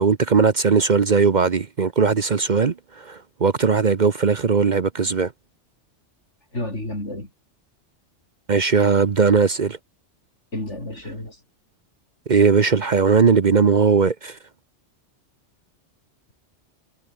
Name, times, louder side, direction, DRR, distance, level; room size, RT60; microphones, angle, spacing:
voice 1, 0.0-5.3 8.5-9.8 12.3-14.4, right 5 dB, 45° right, 0.9 m, -18 dB
voice 2, 6.5-7.3 10.5-11.4, left 1 dB, 80° left, 8.0 m, -30 dB
omnidirectional pair, 1.2 m